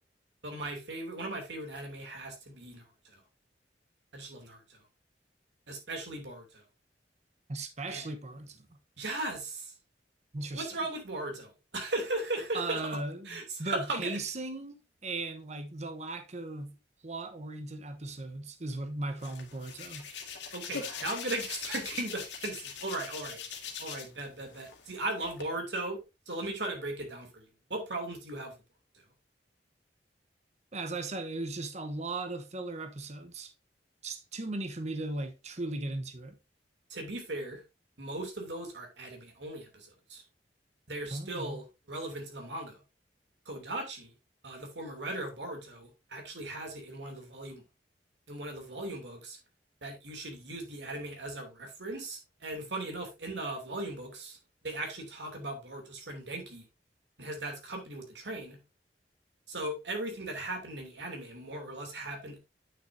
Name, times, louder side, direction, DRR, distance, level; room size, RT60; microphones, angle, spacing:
voice 1, 0.4-3.2 4.1-4.8 5.7-6.6 7.9-8.1 9.0-9.7 10.5-13.0 13.2-14.2 20.5-23.4 23.8-28.5 36.9-37.6 38.0-40.2 40.9-42.8 43.4-44.1 44.4-47.6 48.3-49.4 49.8-54.4 54.6-56.6 57.2-58.6 59.5-62.4, right 2 dB, 90° right, 2.8 m, -38 dB
voice 2, 7.5-8.7 10.3-10.7 12.5-14.7 15.0-16.8 17.0-20.0 30.7-33.5 34.0-36.4 41.1-41.6, right 2 dB, 40° right, 1.0 m, -37 dB
Hands, 19.2-24.2 24.5-25.4, left 6 dB, 90° left, 2.0 m, -41 dB
9.0 x 6.4 x 2.7 m
head